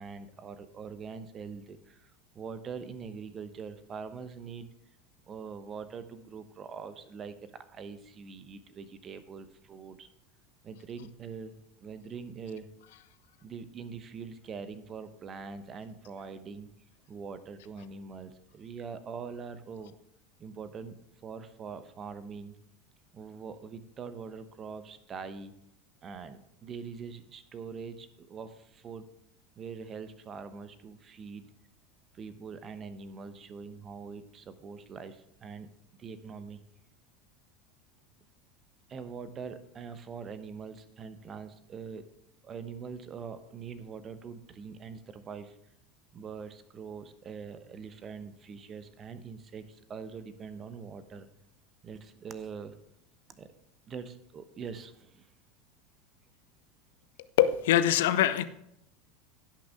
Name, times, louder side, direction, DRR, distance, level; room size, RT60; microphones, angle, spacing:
voice 1, 0.0-4.7 5.3-10.1 10.6-12.7 13.4-16.7 17.1-20.0 20.4-22.6 23.1-25.5 26.0-29.1 29.6-31.5 32.1-35.7 36.0-36.6 38.9-42.1 42.4-45.6 46.1-51.3 51.8-52.7 53.3-53.5 53.9-55.3, right 5 dB, 30° right, 1.0 m, -43 dB
voice 2, 57.4-58.4, left 12 dB, 60° left, 0.6 m, -23 dB
16.5 x 6.2 x 3.6 m
figure-of-eight pair, 80°, 0 cm